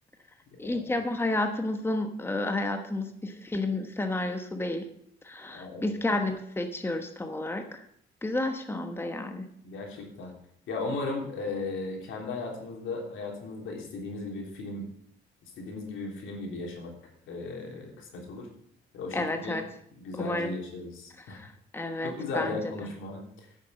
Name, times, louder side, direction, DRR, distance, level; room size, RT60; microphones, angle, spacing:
voice 1, 0.6-4.9 5.2-7.8 8.2-9.4 19.1-19.6 20.2-20.5 21.2-22.6, left 2 dB, 10° left, 6 dB, 1.2 m, -31 dB
voice 2, 5.5-5.9 9.6-10.3 10.7-14.9 15.6-16.9 17.3-18.5 18.9-19.6 19.9-21.4 22.0-23.2, left 3 dB, 80° left, 0 dB, 3.4 m, -36 dB
9.7 x 7.5 x 6.8 m, 0.70 s
cardioid pair, 90°, 20 cm